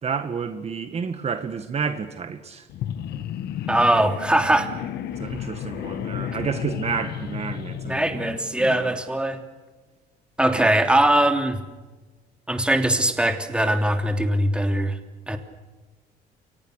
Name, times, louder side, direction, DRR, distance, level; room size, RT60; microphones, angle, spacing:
voice 1, 0.0-2.7 5.2-9.0 10.6-10.7, right 6 dB, 40° right, 8 dB, 2.0 m, -30 dB
sound 1, 2.7-8.9, left 10 dB, 70° left, 1.6 m, -33 dB
voice 2, 3.7-4.7 7.8-9.4 10.4-11.6 12.5-15.0 15.3-15.4, right 1 dB, 5° right, 5 dB, 3.1 m, -21 dB
29.5 x 24.0 x 6.7 m, 1.3 s
cardioid pair, 110°, 17 cm